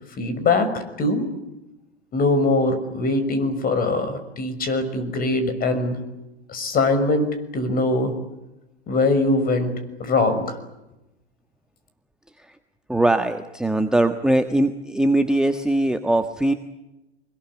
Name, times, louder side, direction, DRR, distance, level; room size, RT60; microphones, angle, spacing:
voice 1, 0.2-0.7 1.0-1.3 2.1-6.0 6.5-8.2 8.9-9.7 10.0-10.6, left 2 dB, 25° left, 10 dB, 6.2 m, -22 dB
voice 2, 12.9-16.5, right 1 dB, ahead, 7 dB, 1.4 m, -21 dB
25.0 x 21.5 x 9.9 m, 0.95 s
hypercardioid pair, 105°, 32 cm